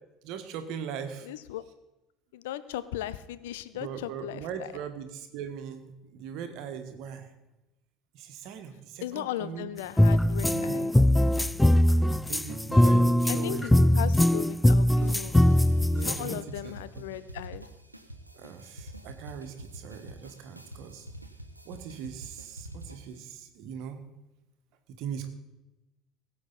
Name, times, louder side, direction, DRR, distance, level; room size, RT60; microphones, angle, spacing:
voice 1, 0.2-1.3 3.7-7.3 8.1-9.7 10.2-10.9 12.3-14.0 15.9-17.1 18.3-21.1 21.6-24.0 25.0-25.3, right 7 dB, 55° right, 7 dB, 1.5 m, -40 dB
voice 2, 1.3-1.6 2.3-4.5 9.0-10.9 13.3-15.3 16.0-17.6, left 13 dB, 65° left, 15 dB, 0.5 m, -37 dB
sound 1, 10.0-16.4, left 1 dB, 5° left, 0.4 m, -21 dB
sound 2, 15.0-23.2, right 1 dB, 90° right, 0.8 m, -46 dB
19.5 x 8.4 x 4.1 m, 0.99 s
figure-of-eight pair, 60°, 0 cm